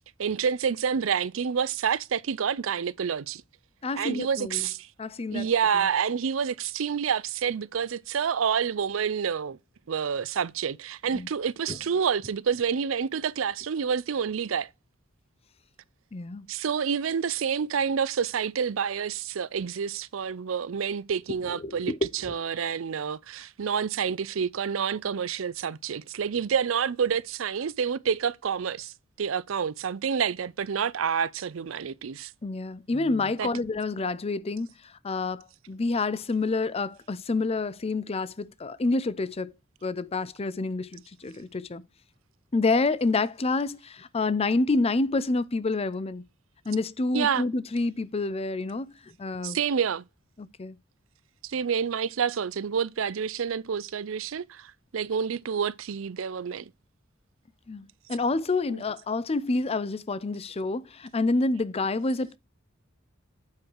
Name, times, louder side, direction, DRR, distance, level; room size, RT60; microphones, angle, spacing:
voice 1, 0.2-3.4 4.0-4.9 5.3-9.6 9.9-14.7 16.5-32.3 33.4-33.5 47.1-47.5 49.4-50.0 51.4-56.7 58.7-58.8, right 7 dB, 75° right, 0.5 m, -28 dB
voice 2, 3.8-4.7 5.0-5.5 11.1-11.3 11.7-11.8 16.1-16.5 21.5-22.0 32.4-39.5 39.8-41.8 42.5-46.2 46.7-49.6 50.4-50.8 57.7-62.4, left 3 dB, 30° left, 0.5 m, -28 dB
8.5 x 4.8 x 4.5 m
head